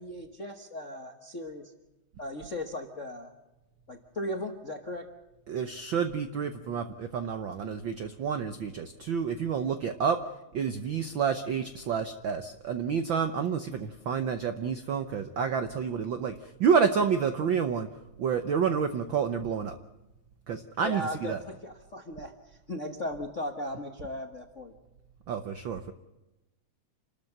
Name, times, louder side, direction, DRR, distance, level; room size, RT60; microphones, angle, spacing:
voice 1, 0.0-1.7 2.2-3.3 3.9-5.1 20.8-24.7, left 1 dB, 45° left, 5 dB, 1.0 m, -37 dB
voice 2, 5.5-10.2 10.5-17.9 18.2-19.8 20.5-21.4 25.3-25.9, right 6 dB, 70° right, 9 dB, 1.1 m, -29 dB
28.0 x 13.0 x 8.0 m, 1.0 s
omnidirectional pair, 3.4 m